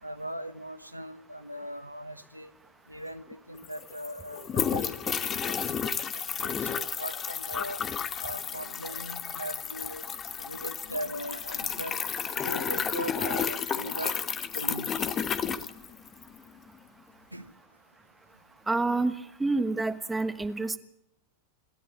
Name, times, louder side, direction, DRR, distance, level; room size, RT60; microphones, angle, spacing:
voice 1, 0.0-2.5 2.9-5.6 6.1-7.8 8.2-10.1 10.5-12.0 12.4-14.2 14.5-14.9 17.3-17.5, right 1 dB, 90° right, 1.0 m, -39 dB
sound 1, 3.3-3.4 3.6-16.4, left 7 dB, 25° left, 1.2 m, -32 dB
voice 2, 18.7-20.8, right 3 dB, 10° right, 1.3 m, -28 dB
27.0 x 13.0 x 8.6 m
figure-of-eight pair, 90°, 0 cm